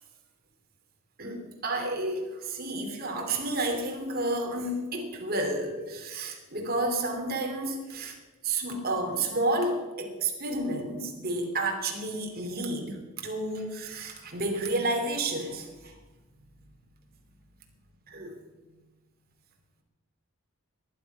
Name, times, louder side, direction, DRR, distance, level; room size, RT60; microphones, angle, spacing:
voice 1, 1.2-8.2 8.4-16.0 18.1-18.3, right 2 dB, 45° right, 2 dB, 3.0 m, -31 dB
19.0 x 11.0 x 5.6 m, 1.2 s
head